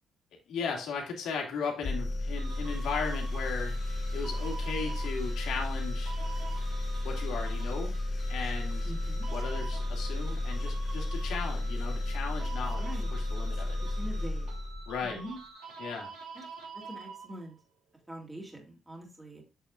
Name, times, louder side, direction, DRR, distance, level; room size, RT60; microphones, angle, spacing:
voice 1, 0.5-3.7 4.1-6.1 7.0-7.9 8.3-8.9 9.3-12.8 13.1-13.8 14.9-15.2 15.8-16.1, left 5 dB, 80° left, 1 dB, 2.4 m, -36 dB
sound 1, 1.8-15.2, left 1 dB, 45° left, 3.2 m, -33 dB
sound 2, 2.4-17.6, right 4 dB, 90° right, 3.2 m, -47 dB
voice 2, 8.8-9.3 12.8-13.1 14.0-14.5 15.0-15.4 16.3-16.4 16.7-17.5 18.1-19.4, right 1 dB, 10° right, 0 dB, 2.4 m, -43 dB
8.1 x 7.1 x 2.5 m, 0.32 s
cardioid pair, 90°, 0 cm